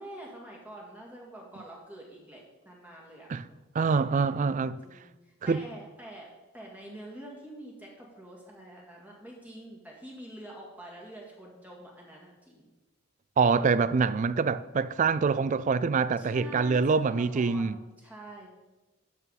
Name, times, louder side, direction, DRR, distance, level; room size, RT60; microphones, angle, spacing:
voice 1, 0.0-3.3 4.3-12.7 16.2-18.5, right 1 dB, 10° right, 2.0 m, -46 dB
voice 2, 3.7-4.8 5.5-5.6 13.4-17.8, right 5 dB, 35° right, 0.3 m, -25 dB
12.0 x 7.1 x 4.1 m
head